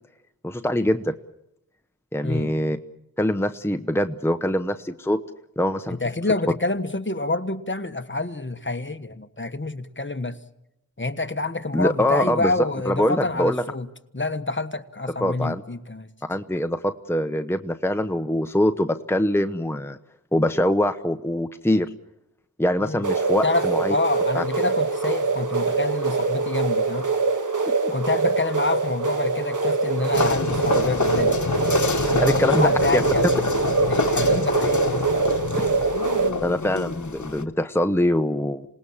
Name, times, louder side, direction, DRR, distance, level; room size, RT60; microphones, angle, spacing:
voice 1, 0.4-1.1 2.1-2.8 3.2-5.2 5.6-6.0 11.7-12.5 12.9-13.6 15.2-15.6 16.3-20.0 20.3-21.9 22.6-23.9 24.3-24.4 27.7-27.9 32.2-33.0 35.6-35.7 36.4-38.7, left 1 dB, 5° left, 8 dB, 0.9 m, -23 dB
voice 2, 2.2-2.5 5.9-10.4 11.0-13.9 14.1-16.1 22.8-23.0 23.4-27.1 27.9-31.4 32.1-33.4 33.9-35.1, left 2 dB, 35° left, 9 dB, 1.4 m, -27 dB
sound 1, 23.0-36.3, right 4 dB, 65° right, 1.7 m, -24 dB
sound 2, 30.1-37.5, left 3 dB, 60° left, 1.6 m, -26 dB
27.0 x 19.5 x 7.3 m, 0.86 s
wide cardioid pair, 45°, 34 cm